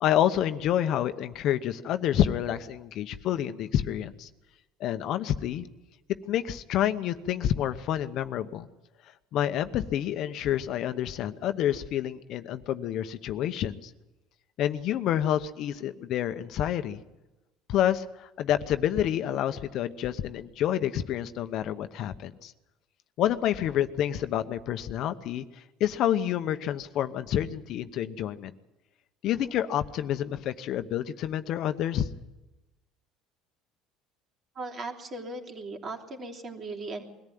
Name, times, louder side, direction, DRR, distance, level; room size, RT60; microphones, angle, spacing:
voice 1, 0.0-4.3 4.8-5.7 6.3-8.7 9.3-13.9 14.6-17.0 17.7-22.5 23.2-28.5 29.2-32.1, left 11 dB, 60° left, 10 dB, 0.9 m, -28 dB
voice 2, 34.5-37.0, right 2 dB, 35° right, 2 dB, 3.3 m, -38 dB
22.0 x 14.5 x 9.4 m, 1.0 s
cardioid pair, 125°, 0 cm